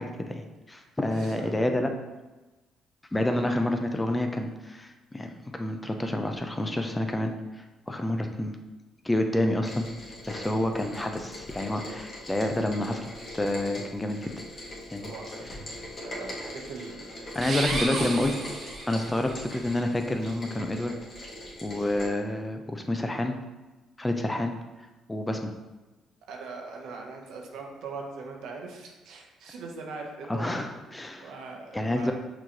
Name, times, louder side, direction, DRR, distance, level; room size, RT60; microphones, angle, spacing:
voice 1, 0.0-1.9 3.1-8.6 9.0-9.9 10.3-14.3 14.9-15.1 17.3-18.3 18.9-20.9 21.6-23.4 24.0-24.5 25.1-25.5 30.3-31.3 31.7-32.1, left 1 dB, 15° left, 5 dB, 0.5 m, -29 dB
voice 2, 0.8-1.6 3.2-3.5 10.5-10.9 15.0-15.3 15.6-18.2 26.3-30.5 31.2-32.1, right 4 dB, 80° right, 0 dB, 0.8 m, -41 dB
Rain, 9.6-22.1, left 1 dB, 40° left, 1.4 m, -42 dB
sound 1, 17.3-19.3, right 2 dB, 50° right, 0.9 m, -32 dB
6.0 x 3.1 x 2.9 m, 1.1 s
cardioid pair, 85°, 0 cm